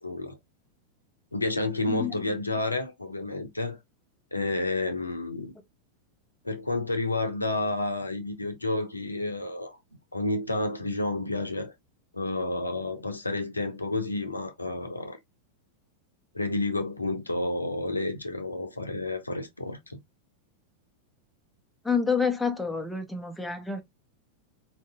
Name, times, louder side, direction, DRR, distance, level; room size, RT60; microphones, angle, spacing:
voice 1, 0.0-0.4 1.3-3.8 4.3-5.5 6.4-9.8 10.1-11.7 12.1-15.2 16.3-20.0, left 2 dB, 80° left, 0.6 m, -30 dB
voice 2, 21.8-23.8, left 5 dB, 5° left, 0.7 m, -28 dB
4.1 x 2.6 x 2.2 m
figure-of-eight pair, 90°, 0 cm